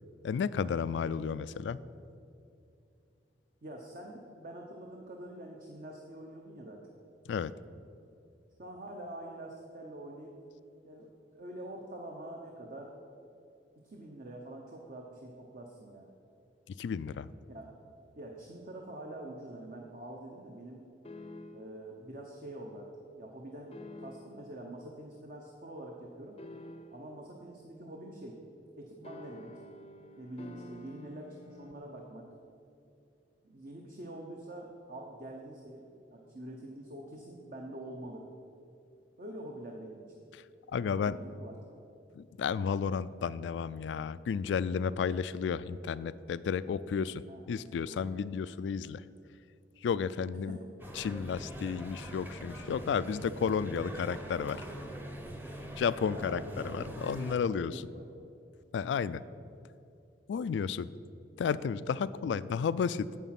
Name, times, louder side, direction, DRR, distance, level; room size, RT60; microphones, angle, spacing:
voice 1, 0.2-1.8 7.3-7.5 16.8-17.3 40.3-40.4 40.7-41.2 42.2-49.0 49.8-50.6 51.0-54.6 55.8-57.8 58.7-59.2 60.3-60.9 61.4-63.3, left 6 dB, 85° left, 17 dB, 0.3 m, -32 dB
voice 2, 3.6-6.8 8.6-10.4 10.8-12.9 13.8-16.1 17.5-17.7 18.2-20.8 21.5-22.9 23.1-26.4 26.9-28.4 28.8-29.6 30.2-32.3 33.4-38.2 39.2-40.0 40.9-41.6 47.3-48.0 50.5-50.6 56.1-57.0 57.7-58.0 62.3-62.4, right 1 dB, 50° right, 0 dB, 0.9 m, -45 dB
sound 1, 21.0-21.8 23.7-24.5 26.4-27.2 29.0-31.7, left 2 dB, 35° left, 0.5 m, -49 dB
sound 2, 50.8-57.4, right 1 dB, 10° right, 0.8 m, -43 dB
9.1 x 7.2 x 5.9 m, 2.6 s
head